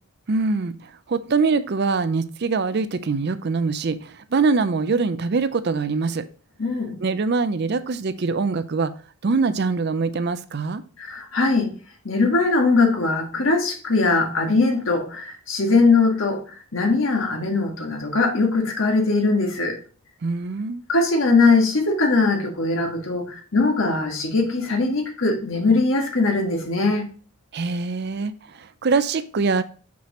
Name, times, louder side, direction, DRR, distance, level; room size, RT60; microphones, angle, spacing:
voice 1, 0.3-6.3 7.0-8.9 9.2-10.8 20.2-20.8 27.5-29.6, right 4 dB, 50° right, 0.4 m, -23 dB
voice 2, 6.6-7.0 11.0-11.7 12.0-19.8 20.9-27.1, left 3 dB, 60° left, 1.6 m, -21 dB
5.9 x 5.9 x 3.0 m
head